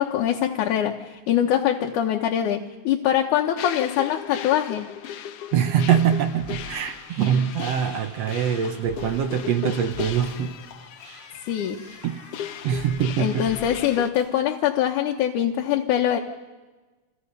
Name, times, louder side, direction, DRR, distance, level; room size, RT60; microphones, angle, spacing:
voice 1, 0.0-4.9 11.5-11.9 13.2-16.2, left 10 dB, 85° left, 1 dB, 2.5 m, -23 dB
sound 1, 3.6-14.1, left 10 dB, 65° left, 1.6 m, -37 dB
voice 2, 5.5-10.5 12.0-12.2 12.6-13.5, right 8 dB, 65° right, 8 dB, 1.9 m, -23 dB
sound 2, 6.2-14.2, equal, 40° right, 8.6 m, -45 dB
29.0 x 23.5 x 5.3 m, 1.3 s
omnidirectional pair, 3.4 m